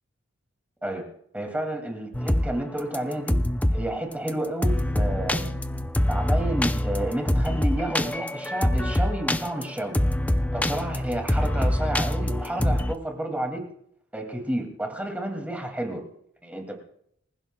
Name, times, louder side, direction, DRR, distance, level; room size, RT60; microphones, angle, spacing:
voice 1, 1.3-3.4 3.7-5.5 6.1-10.0 10.5-13.6 14.1-16.0 16.4-16.8, right 1 dB, 10° right, 3 dB, 2.3 m, -30 dB
sound 1, 2.1-2.5 2.8-3.8 4.3-4.4 4.6-12.9, left 1 dB, 10° left, 0.5 m, -24 dB
25.5 x 15.5 x 2.2 m, 0.69 s
head